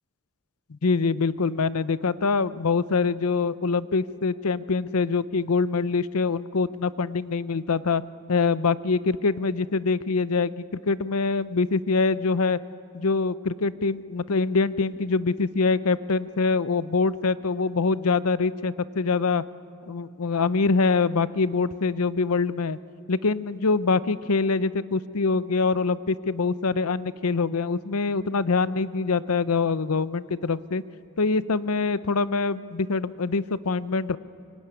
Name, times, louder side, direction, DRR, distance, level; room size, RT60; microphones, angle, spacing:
voice 1, 0.7-8.0 8.3-12.6 12.9-19.4 19.9-22.8 23.1-30.8 31.2-34.2, left 4 dB, 85° left, 15 dB, 0.7 m, -24 dB
24.5 x 24.0 x 9.7 m, 2.7 s
head